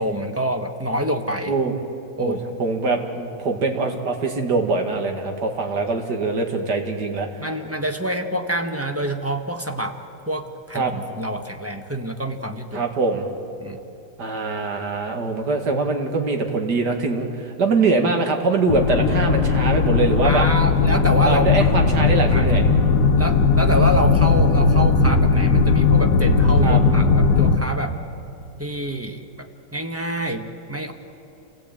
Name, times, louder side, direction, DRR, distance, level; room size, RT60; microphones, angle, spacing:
voice 1, 0.0-1.5 2.2-2.4 7.4-10.0 10.3-12.9 13.6-13.8 20.2-21.5 22.3-22.5 23.2-28.0 28.6-30.9, right 1 dB, 10° right, 4 dB, 0.7 m, -27 dB
voice 2, 2.2-7.3 10.7-10.9 12.7-13.3 14.2-20.5 21.2-22.6 26.6-26.8, right 3 dB, 50° right, 3 dB, 2.4 m, -23 dB
sound 1, 18.7-27.6, left 4 dB, 90° left, 2.1 m, -17 dB
27.5 x 17.5 x 8.8 m, 2.8 s
omnidirectional pair, 2.4 m